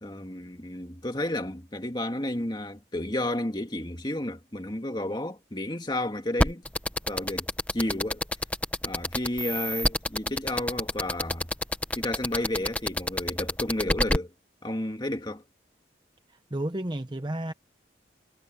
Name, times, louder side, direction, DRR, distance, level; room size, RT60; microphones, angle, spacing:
voice 1, 0.0-6.6 7.1-8.2 8.8-11.5 12.0-14.3 14.6-15.4, left 1 dB, 25° left, 2.1 m, -32 dB
sound 1, 6.4-14.2, left 1 dB, 5° left, 0.9 m, -26 dB
voice 2, 16.5-17.5, right 1 dB, 25° right, 0.8 m, -31 dB
head